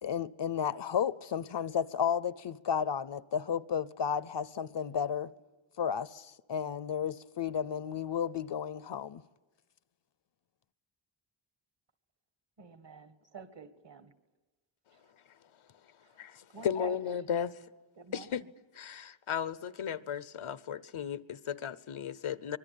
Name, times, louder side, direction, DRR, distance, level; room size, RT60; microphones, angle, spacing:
voice 1, 0.0-5.3 5.8-9.2, left 8 dB, 60° left, 0.7 m, -33 dB
voice 2, 12.6-14.1 14.9-15.1 16.5-17.0 18.0-18.5, right 5 dB, 60° right, 1.9 m, -49 dB
voice 3, 16.6-17.5 18.1-18.4 18.8-22.6, left 8 dB, 85° left, 0.9 m, -35 dB
24.5 x 22.0 x 8.5 m
wide cardioid pair, 105°, 48 cm